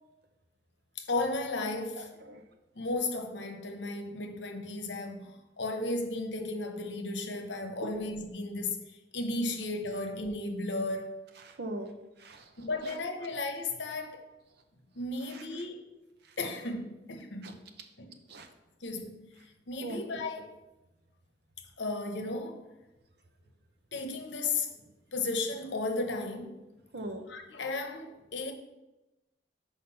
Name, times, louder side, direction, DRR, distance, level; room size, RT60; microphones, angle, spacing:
voice 1, 1.0-2.1 2.7-11.2 12.6-14.2 14.9-15.9 16.4-17.6 18.0-18.2 18.8-19.3 19.7-20.6 21.8-22.7 23.9-24.7 25.1-26.6 27.3-28.5, left 2 dB, 80° left, 0.9 m, -34 dB
voice 2, 11.4-11.9 12.2-12.5 12.8-12.9 17.4-17.6 18.3-18.5 19.8-20.0 26.9-27.2, right 2 dB, 65° right, 0.8 m, -39 dB
5.9 x 5.0 x 5.6 m
head